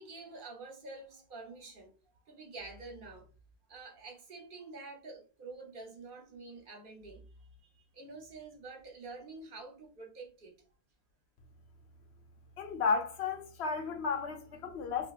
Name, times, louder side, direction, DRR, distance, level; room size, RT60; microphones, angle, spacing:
voice 1, 0.0-1.9 2.3-3.3 3.7-10.6, right 3 dB, 55° right, 1.0 m, -48 dB
voice 2, 12.6-15.1, left 5 dB, 90° left, 1.0 m, -33 dB
4.4 x 2.5 x 2.4 m
omnidirectional pair, 1.1 m